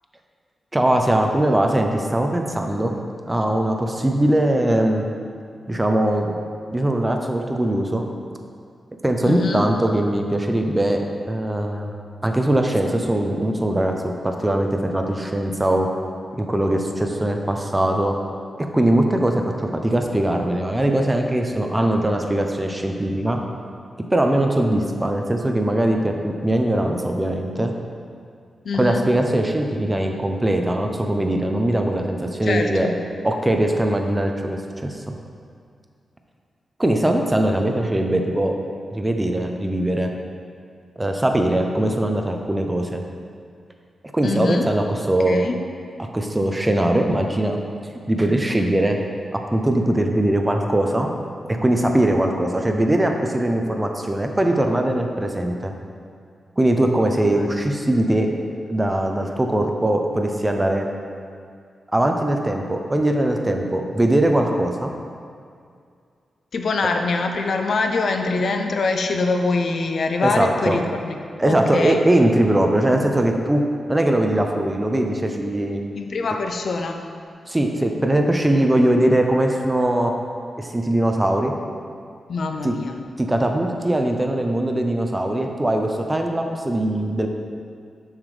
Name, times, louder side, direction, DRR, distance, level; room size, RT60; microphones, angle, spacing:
voice 1, 0.7-2.9 3.2-5.1 5.7-6.3 6.7-8.1 9.0-11.9 12.2-15.9 16.4-18.2 18.6-23.4 24.1-27.7 28.7-32.9 33.2-35.1 36.8-38.5 38.9-40.1 41.0-43.0 44.1-45.5 46.0-47.6 48.1-49.0 49.3-51.1 51.5-55.7 56.6-58.3 58.7-60.9 61.9-64.9 70.2-70.8 71.4-73.6 73.9-75.8 77.5-80.1 80.6-81.5 82.6-82.7 83.2-87.3, right 1 dB, 10° right, 3 dB, 0.5 m, -21 dB
voice 2, 9.2-9.7 28.6-29.1 32.4-33.0 44.2-44.7 45.3-45.6 57.3-57.5 66.5-71.2 71.4-72.0 75.9-77.1 82.3-83.0, left 3 dB, 55° left, 5 dB, 0.5 m, -24 dB
7.1 x 6.9 x 3.2 m, 2.3 s
wide cardioid pair, 165°, 0 cm